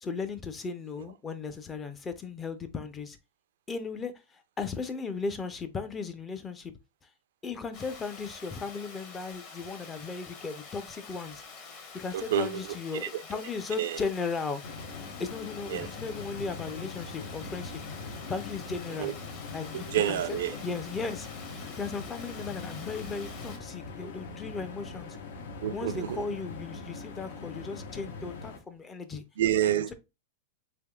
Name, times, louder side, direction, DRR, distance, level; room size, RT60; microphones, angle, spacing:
voice 1, 0.0-3.2 3.7-6.7 7.4-11.4 11.9-14.6 15.2-17.8 18.3-19.1 19.5-20.4 20.6-21.3 21.8-25.2 25.7-29.2, left 4 dB, 15° left, 0.4 m, -36 dB
Water, 7.7-23.6, left 5 dB, 40° left, 1.0 m, -47 dB
voice 2, 12.1-12.7 12.9-13.1 13.8-14.0 15.7-15.9 19.0-19.1 19.7-20.6 25.6-26.2 29.4-29.9, right 11 dB, 75° right, 0.4 m, -28 dB
sound 1, 14.6-28.6, left 4 dB, 75° left, 0.8 m, -42 dB
3.5 x 3.4 x 2.2 m
supercardioid pair, 150°, 0 cm